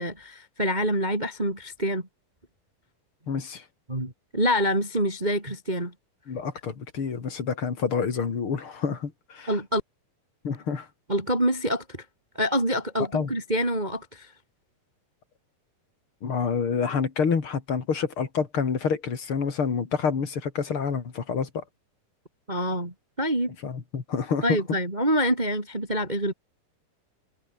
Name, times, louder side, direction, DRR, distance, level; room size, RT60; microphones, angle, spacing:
voice 1, 0.0-2.0 3.9-5.9 9.5-9.8 11.1-12.0 12.3-14.3 22.5-23.5 24.4-26.3, equal, 10° right, 3.7 m, -26 dB
voice 2, 3.3-3.6 6.3-9.5 10.4-10.9 13.1-13.3 16.2-21.6 23.6-24.4, left 6 dB, 35° left, 3.1 m, -28 dB
omnidirectional pair, 4.6 m